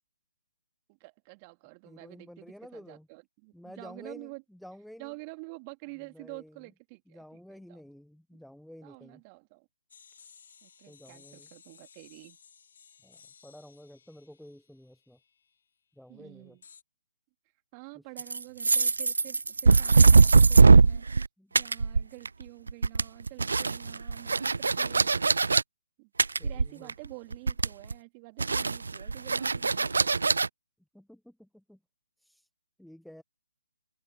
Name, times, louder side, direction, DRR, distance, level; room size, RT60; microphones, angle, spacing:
voice 1, 0.9-4.4 5.0-7.8 8.3-8.4 8.8-9.7 10.6-12.4 16.1-16.6 17.7-21.1 21.5-25.2 26.0-26.1 26.4-30.2, right 32 dB, 25° right, 3.0 m, -48 dB
voice 2, 1.8-3.1 3.5-5.1 6.1-6.6 7.1-9.2 10.9-11.5 13.0-15.2 16.0-16.6 21.4-21.5 26.4-26.9 30.9-31.8 32.2-32.5 32.8-33.2, equal, ahead, 0.9 m, -50 dB
sound 1, 9.9-15.6 16.6-16.8, left 7 dB, 55° left, 3.8 m, -57 dB
sound 2, 18.2-21.3 21.6-22.4 22.7-25.6 26.2-27.1 27.3-27.9 28.4-30.5, right 4 dB, 70° right, 0.3 m, -21 dB
figure-of-eight pair, 140°, 0 cm